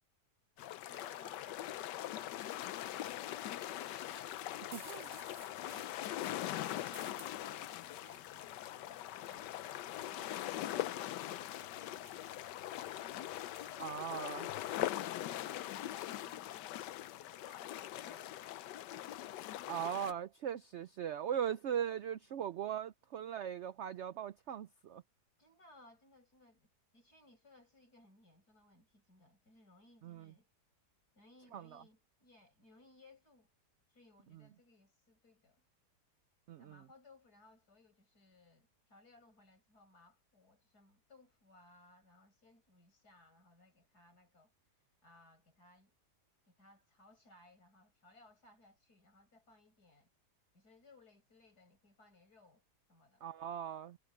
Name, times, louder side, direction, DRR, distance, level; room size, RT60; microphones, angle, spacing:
sound 1, 0.6-20.1, left 13 dB, 80° left, 1.3 m, -42 dB
voice 1, 0.9-6.4 6.7-12.4 14.8-18.4 25.4-30.5 31.2-33.5 33.9-35.6 36.6-44.5 45.0-45.9 46.5-50.1 50.5-52.6 52.9-53.2, left 2 dB, 65° left, 7.3 m, -63 dB
sound 2, 4.5-14.9, right 3 dB, 40° right, 2.4 m, -61 dB
voice 2, 4.7-5.0 13.8-14.5 19.7-25.0 30.0-30.3 31.5-31.8 36.5-36.8 53.2-54.0, right 9 dB, 90° right, 0.6 m, -39 dB
omnidirectional pair, 1.8 m